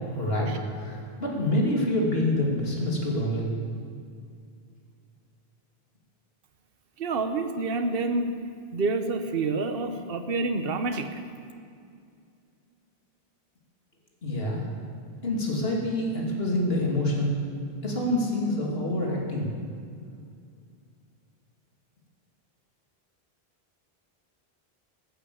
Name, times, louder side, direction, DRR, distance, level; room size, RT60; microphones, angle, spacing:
voice 1, 0.1-0.5 0.8-3.5 14.2-14.6 15.2-17.4 17.8-19.5, left 1 dB, 70° left, -2 dB, 3.1 m, -26 dB
voice 2, 7.0-8.3 8.7-11.2, right 3 dB, 65° right, 7 dB, 1.2 m, -28 dB
14.5 x 9.7 x 8.6 m, 2.3 s
omnidirectional pair, 1.0 m